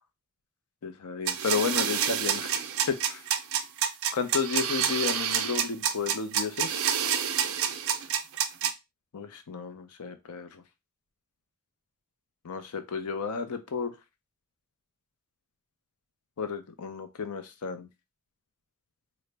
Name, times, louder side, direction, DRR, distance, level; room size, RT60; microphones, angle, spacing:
voice 1, 0.8-2.5 2.9-3.2 4.1-6.9 9.1-10.6 12.4-13.9 16.4-17.9, left 5 dB, 90° left, 8 dB, 0.5 m, -32 dB
sound 1, 1.3-8.7, right 8 dB, 65° right, 0.5 m, -28 dB
3.7 x 2.0 x 3.3 m, 0.22 s
head